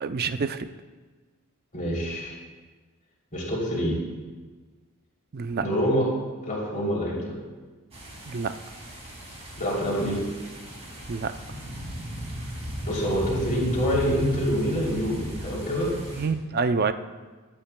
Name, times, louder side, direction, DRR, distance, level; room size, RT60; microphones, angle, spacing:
voice 1, 0.0-0.7 5.3-5.7 8.3-8.5 11.1-11.3 16.1-16.9, right 5 dB, 45° right, 11 dB, 0.5 m, -27 dB
voice 2, 1.7-2.4 3.3-4.0 5.6-6.1 6.4-7.3 9.6-10.2 12.8-15.9, equal, 35° left, -3 dB, 3.0 m, -26 dB
sound 1, 7.9-16.3, equal, 30° right, 2.3 m, -36 dB
21.0 x 8.8 x 2.2 m, 1.4 s
head